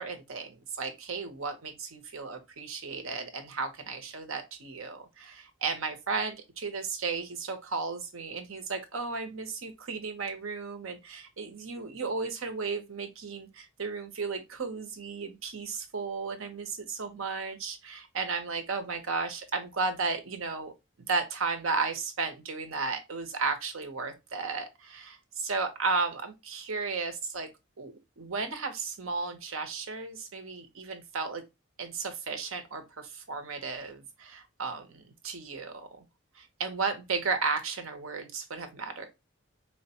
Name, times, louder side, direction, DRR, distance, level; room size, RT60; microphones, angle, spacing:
voice 1, 0.0-20.7 21.1-27.5 27.8-31.4 31.8-36.0 36.3-39.1, right 4 dB, 90° right, 0.8 m, -34 dB
4.4 x 2.2 x 2.8 m
head